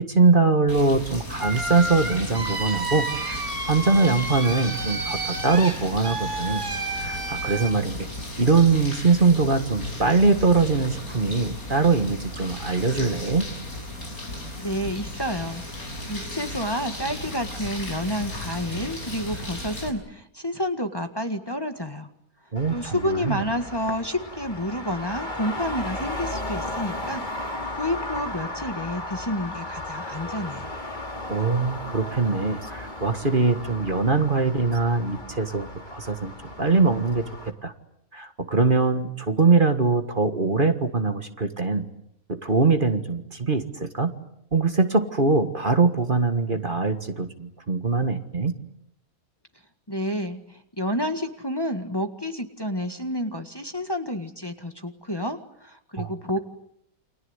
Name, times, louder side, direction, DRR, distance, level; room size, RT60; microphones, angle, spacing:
voice 1, 0.0-3.4 3.7-6.6 6.9-8.1 8.4-13.5 22.5-23.4 31.3-36.3 36.6-37.3 37.6-37.7 38.1-41.9 42.3-44.1 44.5-48.5 56.0-56.1, right 4 dB, 35° right, 7 dB, 1.7 m, -22 dB
sound 1, 0.7-19.9, left 1 dB, 85° left, 6.8 m, -35 dB
sound 2, 1.4-7.7, right 2 dB, 55° right, 5.0 m, -31 dB
voice 2, 14.6-22.1 22.7-30.7 49.9-56.4, equal, 15° left, 6 dB, 1.7 m, -30 dB
Traffic noise roadway noise, 22.6-37.5, left 1 dB, 30° left, 3.0 m, -35 dB
29.5 x 25.0 x 8.1 m, 0.76 s
omnidirectional pair, 1.5 m